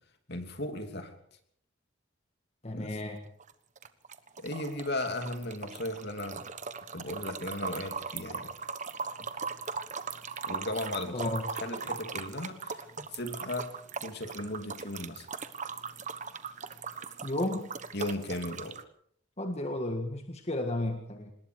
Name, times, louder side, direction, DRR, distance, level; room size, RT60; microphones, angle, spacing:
voice 1, 0.3-1.1 2.7-3.0 4.4-6.4 6.9-8.5 10.4-13.8 14.0-15.3 17.9-18.8, left 1 dB, 50° left, 6 dB, 3.0 m, -36 dB
voice 2, 2.6-3.2 11.1-11.4 17.2-17.7 19.4-21.3, left 1 dB, 30° left, 4 dB, 1.8 m, -33 dB
sound 1, 3.2-3.5 3.8-18.8, right 5 dB, 35° right, 1.3 m, -39 dB
26.0 x 20.5 x 4.9 m, 0.62 s
head